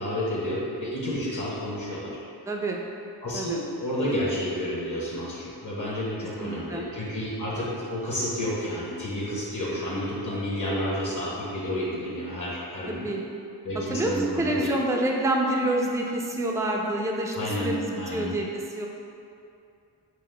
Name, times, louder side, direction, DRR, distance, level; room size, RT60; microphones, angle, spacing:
voice 1, 0.0-2.2 3.2-13.1 13.6-14.7 17.4-18.3, equal, 45° left, -6 dB, 0.9 m, -30 dB
voice 2, 2.5-2.8 3.3-3.6 6.4-6.8 12.9-13.2 13.9-18.9, right 1 dB, 10° right, -1 dB, 0.3 m, -27 dB
5.6 x 2.1 x 3.2 m, 2.6 s
wide cardioid pair, 80°, 43 cm